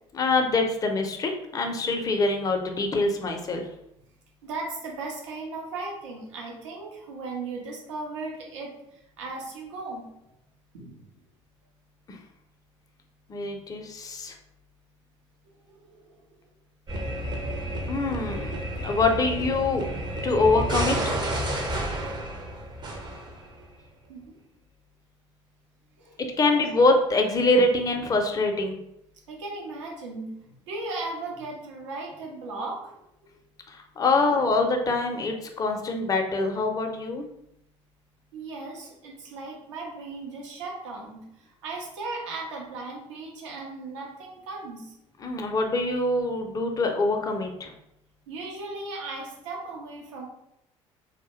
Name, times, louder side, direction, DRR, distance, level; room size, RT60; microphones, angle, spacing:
voice 1, 0.1-3.6 12.1-12.2 13.3-14.3 17.9-19.8 20.2-21.1 26.4-28.8 33.7-37.3 45.2-47.7, left 3 dB, 25° left, 3 dB, 0.4 m, -24 dB
voice 2, 4.4-10.2 10.7-11.1 15.6-16.4 17.3-17.8 21.7-21.8 22.1-22.5 24.1-24.4 26.0-26.7 29.3-30.4 30.7-32.9 38.3-44.9 48.3-50.3, right 3 dB, 80° right, -1 dB, 0.6 m, -37 dB
sound 1, 16.9-23.7, right 1 dB, 30° right, 0.5 m, -31 dB
2.2 x 2.0 x 2.9 m, 0.80 s
hypercardioid pair, 60°, 15 cm